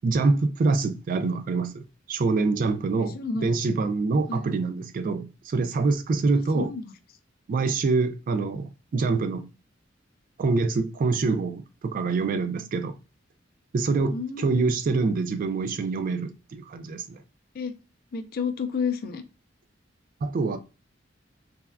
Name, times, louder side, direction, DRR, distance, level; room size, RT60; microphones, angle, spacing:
voice 1, 0.0-3.2 3.4-6.7 7.5-9.5 10.4-12.9 13.7-17.2 20.2-20.6, right 3 dB, 45° right, 0.3 m, -25 dB
voice 2, 3.0-3.6 4.3-4.5 6.3-6.9 14.0-14.7 17.5-17.7 18.1-19.2, left 5 dB, 50° left, 0.4 m, -31 dB
3.4 x 2.1 x 2.2 m
head